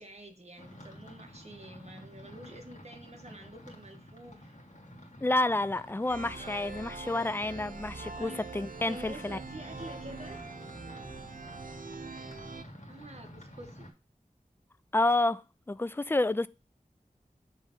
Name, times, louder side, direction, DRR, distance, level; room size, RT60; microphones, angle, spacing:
voice 1, 0.0-4.6 6.4-6.7 8.2-8.4 8.9-10.4 12.9-13.9, right 1 dB, 50° right, 1.6 m, -48 dB
sound 1, 0.6-13.9, equal, 60° left, 1.9 m, -50 dB
voice 2, 5.2-9.4 14.9-15.4 15.7-16.5, left 2 dB, 15° left, 0.4 m, -29 dB
sound 2, 6.1-12.6, right 4 dB, 75° right, 0.7 m, -44 dB
7.2 x 3.4 x 5.4 m
wide cardioid pair, 40°, 14 cm